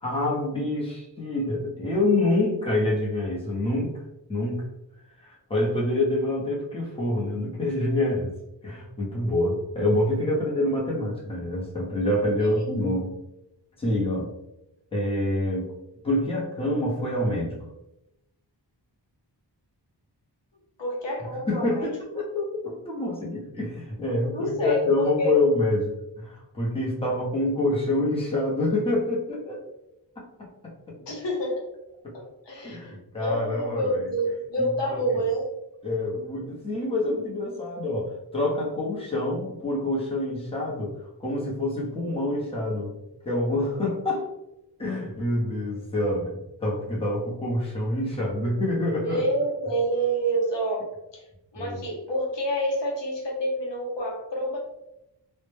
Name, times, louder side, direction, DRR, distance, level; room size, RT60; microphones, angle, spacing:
voice 1, 0.0-3.9 4.3-4.6 5.2-8.3 8.6-13.1 13.8-14.3 14.9-15.7 16.0-17.6 21.5-29.6 30.2-30.7 32.0-32.1 32.6-34.1 34.6-34.7 35.8-40.9 41.2-42.9 43.2-44.3 44.8-49.2 51.6-51.8, left 1 dB, 15° left, -4 dB, 0.7 m, -26 dB
voice 2, 20.8-21.9 24.3-25.3 31.1-31.5 32.1-35.5 49.0-51.2 51.5-54.6, right 1 dB, 75° left, -2 dB, 0.7 m, -28 dB
2.1 x 2.0 x 3.1 m, 0.91 s
wide cardioid pair, 70°, 44 cm